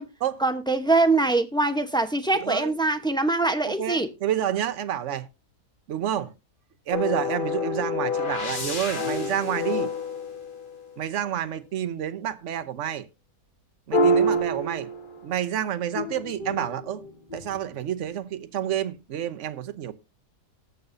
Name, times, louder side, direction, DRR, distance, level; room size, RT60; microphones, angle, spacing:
voice 1, 0.4-4.1, right 2 dB, 5° left, 0.6 m, -23 dB
voice 2, 2.3-2.7 3.7-5.3 5.9-6.3 6.9-9.9 11.0-13.1 13.9-14.9 15.2-17.0 17.3-19.9, right 10 dB, 55° right, 1.1 m, -29 dB
sound 1, 6.9-11.1 13.9-15.4 15.9-17.7, equal, 35° left, 1.5 m, -27 dB
19.0 x 6.9 x 2.6 m
omnidirectional pair, 1.6 m